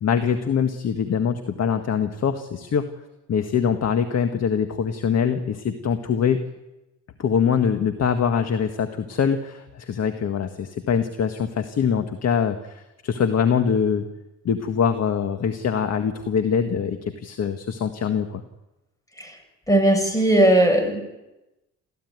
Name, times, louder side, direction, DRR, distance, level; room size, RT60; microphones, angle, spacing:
voice 1, 0.0-2.9 3.3-6.5 7.2-14.1 14.5-18.4, left 7 dB, 55° left, 8 dB, 1.8 m, -23 dB
voice 2, 19.7-21.0, right 1 dB, 10° left, 5 dB, 7.3 m, -18 dB
28.5 x 15.0 x 9.5 m, 1.0 s
cardioid pair, 90°, 30 cm